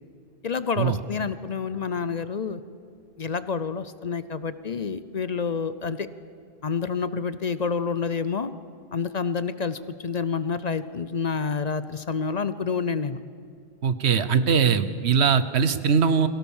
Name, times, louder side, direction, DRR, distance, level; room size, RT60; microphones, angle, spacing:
voice 1, 0.4-2.6 3.2-6.1 6.6-8.5 8.9-13.2, left 5 dB, 45° left, 14 dB, 0.7 m, -28 dB
voice 2, 13.8-16.3, right 6 dB, 85° right, 13 dB, 1.2 m, -21 dB
22.0 x 17.5 x 7.2 m, 2.4 s
omnidirectional pair, 1.1 m